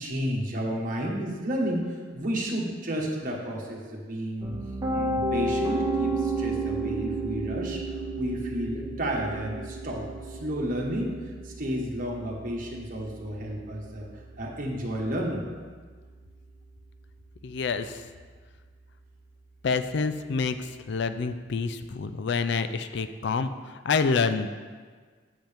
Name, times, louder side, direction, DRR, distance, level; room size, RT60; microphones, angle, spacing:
voice 1, 0.0-4.5 4.9-14.1 14.4-15.4, equal, 45° right, -2 dB, 1.4 m, -32 dB
Piano, 4.4-16.3, right 2 dB, 20° right, 1.5 m, -33 dB
voice 2, 17.4-18.0 19.6-24.5, left 4 dB, 65° left, 11 dB, 0.4 m, -27 dB
7.9 x 7.4 x 3.5 m, 1.5 s
head